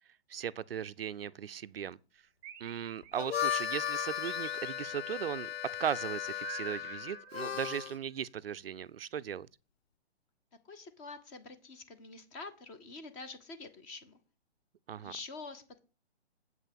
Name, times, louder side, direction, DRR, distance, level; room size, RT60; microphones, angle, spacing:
voice 1, 0.3-2.0 2.6-5.5 5.8-9.5 14.9-15.1, right 9 dB, 60° right, 0.5 m, -37 dB
sound 1, 2.4-3.6 4.2-5.4 6.4-7.9, right 11 dB, 20° right, 0.8 m, -49 dB
Harmonica, 3.0-8.0, left 10 dB, 65° left, 0.8 m, -36 dB
voice 2, 10.6-14.2 14.9-15.8, left 3 dB, 15° left, 0.8 m, -47 dB
7.9 x 5.5 x 7.5 m
hypercardioid pair, 155°, 33 cm